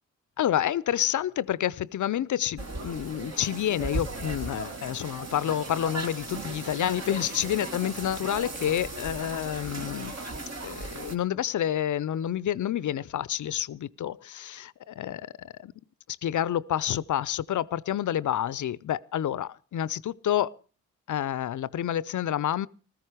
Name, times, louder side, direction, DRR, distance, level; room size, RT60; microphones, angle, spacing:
voice 1, 0.4-10.1 10.6-15.7 16.2-20.5 21.1-22.7, left 11 dB, 60° left, 0.6 m, -29 dB
sound 1, 2.6-11.1, right 2 dB, 50° right, 2.0 m, -37 dB
15.0 x 13.5 x 4.9 m
supercardioid pair, 40°, 34 cm